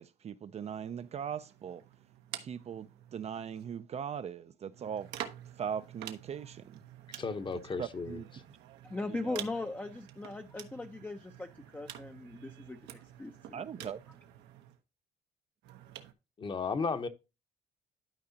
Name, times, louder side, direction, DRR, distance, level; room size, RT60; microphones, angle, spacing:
voice 1, 0.0-1.8 2.4-5.1 5.6-6.8 7.8-8.6 9.1-9.4 13.5-14.0, right 8 dB, 40° right, 0.5 m, -40 dB
sound 1, 0.6-3.8 4.7-14.8 15.6-16.1, right 11 dB, 85° right, 1.0 m, -49 dB
voice 2, 7.2-8.2 16.4-17.1, left 4 dB, 30° left, 0.9 m, -34 dB
voice 3, 8.8-13.9, left 2 dB, 10° left, 0.6 m, -40 dB
12.0 x 4.8 x 2.8 m
cardioid pair, 110°, 17 cm